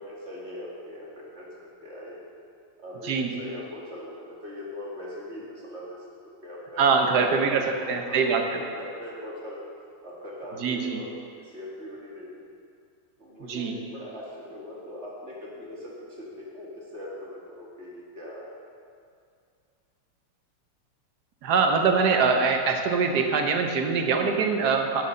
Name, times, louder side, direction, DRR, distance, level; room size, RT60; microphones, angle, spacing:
voice 1, 0.0-2.3 2.8-6.1 6.4-9.6 10.0-12.4 13.2-18.5, left 1 dB, 30° right, -5 dB, 2.2 m, -40 dB
voice 2, 6.8-8.6 10.6-11.0 13.4-13.8 21.4-25.0, right 5 dB, 60° right, 4 dB, 1.3 m, -23 dB
11.0 x 6.9 x 6.4 m, 2.4 s
omnidirectional pair, 2.4 m